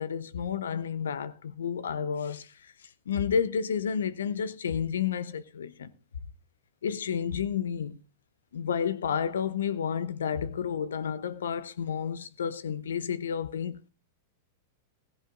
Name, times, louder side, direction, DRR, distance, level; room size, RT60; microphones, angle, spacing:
voice 1, 0.0-5.9 6.8-8.0 8.5-13.9, left 7 dB, 75° left, 0.8 m, -31 dB
15.5 x 14.5 x 2.6 m
hypercardioid pair, 105°, 0 cm